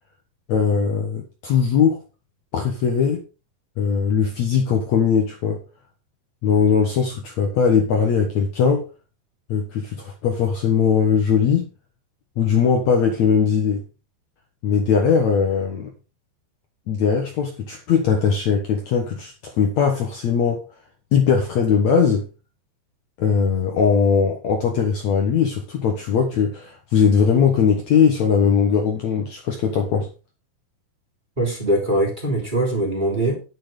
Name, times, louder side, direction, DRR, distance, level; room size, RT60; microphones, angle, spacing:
voice 1, 0.5-2.0 2.5-3.2 3.8-5.6 6.4-8.8 9.5-11.6 12.4-13.8 14.6-15.9 16.9-20.6 21.1-22.3 23.2-30.1, left 6 dB, 60° left, 2.3 m, -20 dB
voice 2, 31.4-33.4, right 1 dB, 15° right, 3.2 m, -22 dB
10.5 x 9.7 x 3.9 m
omnidirectional pair, 4.3 m